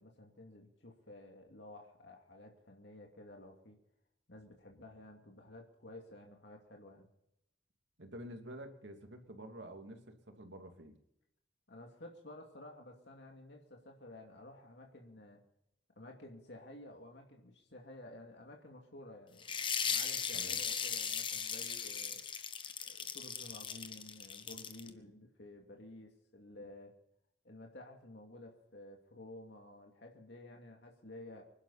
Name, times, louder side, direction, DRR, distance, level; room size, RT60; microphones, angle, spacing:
voice 1, 0.0-3.8 4.3-7.1 11.7-15.4 16.0-19.5 19.9-22.2 22.8-26.9 27.4-31.4, left 1 dB, 70° left, 1 dB, 2.5 m, -53 dB
voice 2, 8.0-11.0 20.3-20.6, right 1 dB, 80° right, 4 dB, 2.7 m, -49 dB
sound 1, 19.4-24.9, left 7 dB, 25° left, 1.1 m, -38 dB
25.5 x 11.5 x 4.2 m, 0.78 s
head